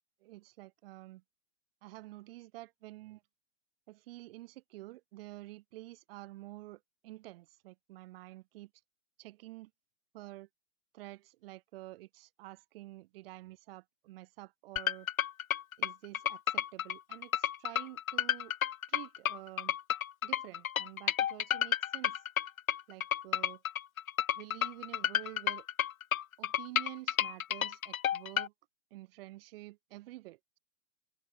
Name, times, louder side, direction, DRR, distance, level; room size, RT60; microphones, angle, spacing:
voice 1, 0.2-1.2 1.8-3.2 3.9-8.7 9.2-9.7 10.1-10.5 10.9-15.1 15.8-18.5 18.9-19.8 20.2-22.2 22.9-23.6 24.3-25.7 26.4-28.5 28.9-30.6, right 18 dB, 45° right, 5.1 m, -49 dB
sound 1, 14.8-28.5, left 10 dB, 75° left, 1.4 m, -31 dB
hypercardioid pair, 150°, 42 cm